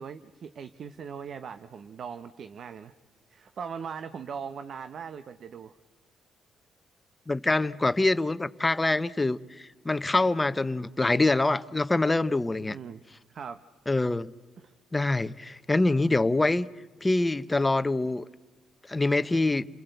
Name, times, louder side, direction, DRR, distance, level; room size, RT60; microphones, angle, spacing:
voice 1, 0.0-2.9 3.3-5.8 12.6-13.0 13.3-13.6 14.6-14.7, right 6 dB, 55° right, 11 dB, 1.0 m, -40 dB
voice 2, 7.3-12.8 13.9-14.3 14.9-16.7 17.0-18.2 18.9-19.7, left 2 dB, 15° left, 13 dB, 0.9 m, -25 dB
29.5 x 23.0 x 8.0 m, 1.2 s
cardioid pair, 90°, 0 cm